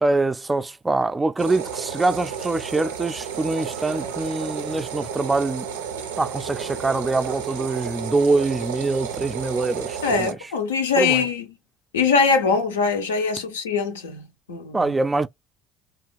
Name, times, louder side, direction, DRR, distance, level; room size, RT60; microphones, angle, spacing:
voice 1, 0.0-5.7 6.2-10.5 11.0-11.3 14.7-15.3, right 3 dB, 20° right, 0.3 m, -24 dB
sound 1, 1.4-10.3, right 7 dB, 80° right, 0.5 m, -32 dB
voice 2, 10.0-11.4 11.9-14.2 14.5-14.8, left 5 dB, 80° left, 0.5 m, -22 dB
2.9 x 2.3 x 3.1 m
figure-of-eight pair, 55°, 0 cm